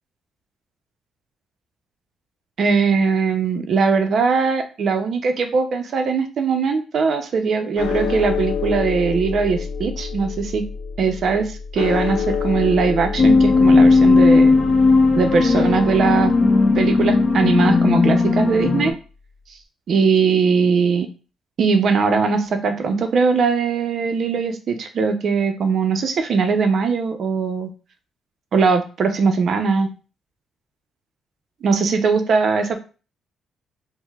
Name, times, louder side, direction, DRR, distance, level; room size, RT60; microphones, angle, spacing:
voice 1, 2.6-10.6 11.0-14.5 15.2-16.3 16.7-18.9 19.9-21.1 21.6-27.7 28.5-29.9 31.6-32.8, right 5 dB, 60° right, 7 dB, 0.5 m, -20 dB
sound 1, 7.8-18.2, left 6 dB, 90° left, 0.3 m, -28 dB
sound 2, 13.2-18.9, left 3 dB, 35° left, 0.6 m, -15 dB
4.3 x 2.0 x 2.2 m, 0.35 s
cardioid pair, 90°, 0 cm